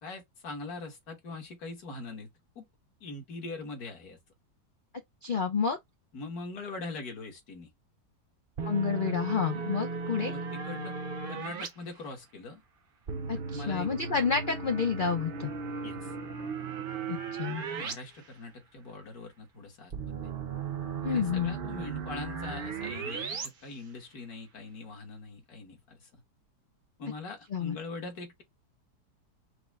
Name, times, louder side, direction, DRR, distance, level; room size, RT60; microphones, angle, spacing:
voice 1, 0.0-2.3 2.6-2.7 3.0-4.2 6.1-7.7 9.5-9.7 10.2-10.9 11.3-12.6 13.5-13.9 15.8-16.2 17.6-20.1 21.1-26.2 27.0-28.4, left 3 dB, 65° left, 1.9 m, -42 dB
voice 2, 5.2-5.8 8.6-10.3 13.3-15.5 17.1-17.6 21.0-21.6 27.5-27.8, left 6 dB, 85° left, 0.4 m, -29 dB
sound 1, 8.6-11.7 13.1-17.9 18.3-18.4 19.9-23.5, right 5 dB, 50° right, 0.7 m, -36 dB
4.8 x 2.2 x 3.5 m
omnidirectional pair, 1.8 m